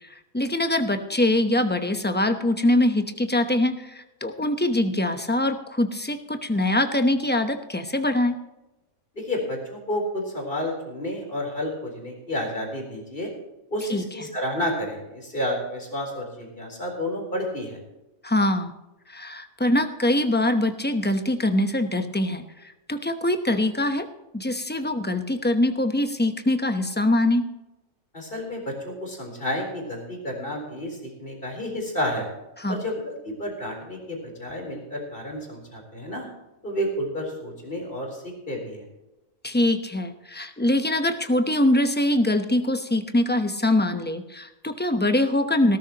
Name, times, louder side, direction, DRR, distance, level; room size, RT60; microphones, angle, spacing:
voice 1, 0.3-8.3 13.9-14.0 18.2-18.7 19.1-22.4 22.9-24.1 24.3-27.4 32.6-32.8 39.4-45.8, left 1 dB, 10° left, 7 dB, 0.7 m, -23 dB
voice 2, 9.1-13.3 13.7-17.8 28.1-32.3 32.7-36.3 36.6-38.9, left 1 dB, 35° left, 1 dB, 4.2 m, -30 dB
19.0 x 13.0 x 3.0 m, 1.0 s
omnidirectional pair, 1.6 m